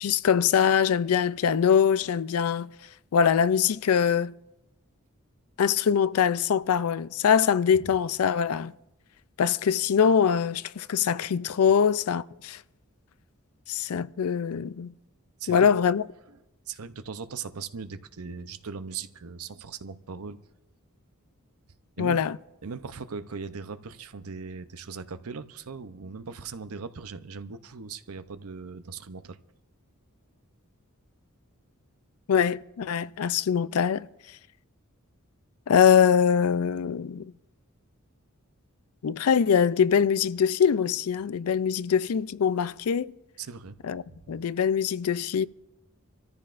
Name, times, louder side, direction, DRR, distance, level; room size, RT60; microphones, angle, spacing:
voice 1, 0.0-2.7 3.1-4.3 5.6-8.7 9.4-12.6 13.7-14.9 15.5-16.0 22.0-22.4 32.3-34.1 35.7-37.3 39.0-43.1 43.8-44.0 44.3-45.5, left 7 dB, 80° left, 0.4 m, -23 dB
voice 2, 15.4-15.7 16.3-16.4 16.7-20.4 22.0-22.2 22.6-29.4 43.4-43.8 44.1-44.2, right 5 dB, 85° right, 0.7 m, -39 dB
26.0 x 14.0 x 2.5 m
head